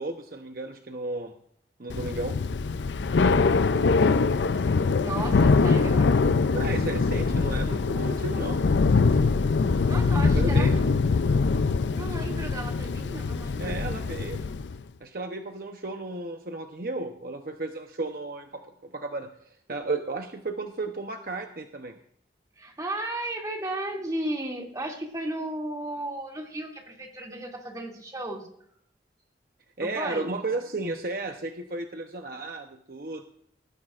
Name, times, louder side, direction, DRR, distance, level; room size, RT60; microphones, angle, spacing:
voice 1, 0.0-1.3 1.8-2.4 6.5-8.7 10.3-10.8 13.6-14.5 15.0-19.3 19.7-22.0 29.8-33.2, right 2 dB, 55° right, 4 dB, 0.9 m, -33 dB
Thunder / Rain, 1.9-14.8, left 4 dB, 90° left, 0.5 m, -23 dB
voice 2, 5.0-6.1 9.8-10.8 11.9-13.8 22.6-28.5 29.8-30.3, right 1 dB, 20° right, -1 dB, 2.6 m, -34 dB
19.0 x 14.0 x 2.5 m, 0.70 s
head